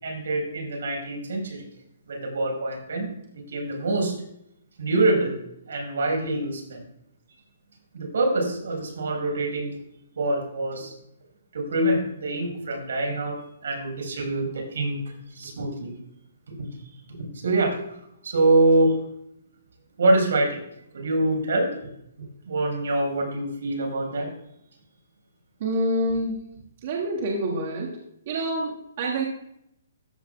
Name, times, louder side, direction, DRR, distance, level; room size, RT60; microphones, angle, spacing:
voice 1, 0.0-1.6 2.1-3.1 3.5-4.2 4.8-5.3 5.7-6.8 7.9-9.7 10.2-10.9 11.5-15.0 15.4-15.9 17.4-17.8 18.2-18.9 20.0-20.6 20.9-21.7 22.5-24.3, right 2 dB, 75° right, 2 dB, 3.9 m, -24 dB
voice 2, 25.6-26.4 26.8-28.0 28.3-29.2, right 1 dB, 40° right, -1 dB, 1.6 m, -27 dB
14.0 x 5.4 x 3.8 m, 0.77 s
hypercardioid pair, 165°, 0 cm